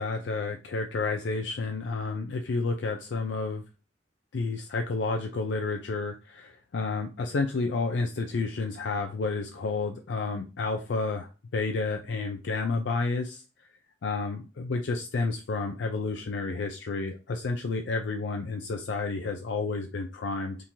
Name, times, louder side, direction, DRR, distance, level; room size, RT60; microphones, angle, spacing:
voice 1, 0.0-3.6 4.3-13.4 14.0-20.6, left 3 dB, 70° left, 4 dB, 0.4 m, -30 dB
3.7 x 2.7 x 2.9 m, 0.31 s
head